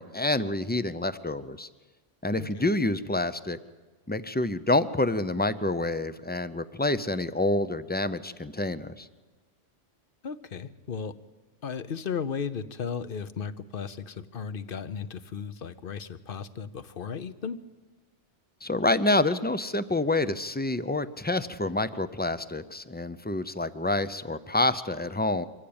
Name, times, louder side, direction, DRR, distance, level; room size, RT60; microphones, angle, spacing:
voice 1, 0.0-1.7 2.2-3.6 4.1-9.1 18.6-25.5, left 2 dB, 15° left, 13 dB, 0.4 m, -27 dB
voice 2, 2.4-2.7 10.2-11.1 11.6-17.6, left 6 dB, 50° left, 14 dB, 0.9 m, -35 dB
24.0 x 15.0 x 8.8 m, 1.3 s
omnidirectional pair, 1.2 m